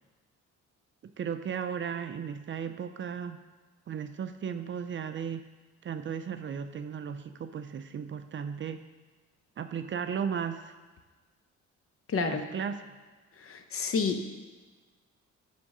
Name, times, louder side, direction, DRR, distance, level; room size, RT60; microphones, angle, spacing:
voice 1, 1.0-3.4 3.9-5.4 5.8-8.8 9.6-10.8 12.1-12.8, right 7 dB, 40° right, 9 dB, 0.5 m, -35 dB
voice 2, 12.1-12.5 13.4-14.3, left 5 dB, 45° left, 7 dB, 0.8 m, -30 dB
9.6 x 3.7 x 5.3 m, 1.3 s
cardioid pair, 90°, 30 cm